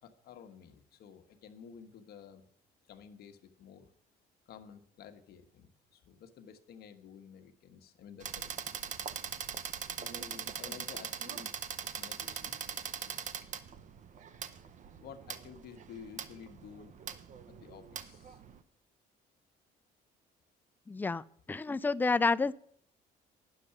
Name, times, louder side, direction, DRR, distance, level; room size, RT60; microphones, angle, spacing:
voice 1, 0.0-2.5 2.9-3.9 4.5-8.7 9.8-11.5 11.9-12.6 12.8-13.5 15.0-16.9 17.5-18.4, left 7 dB, 70° left, 1.2 m, -52 dB
sound 1, 8.2-18.6, right 8 dB, 45° right, 0.7 m, -41 dB
voice 2, 20.9-22.5, left 4 dB, 10° left, 0.3 m, -29 dB
10.0 x 6.5 x 7.0 m
cardioid pair, 110°, 17 cm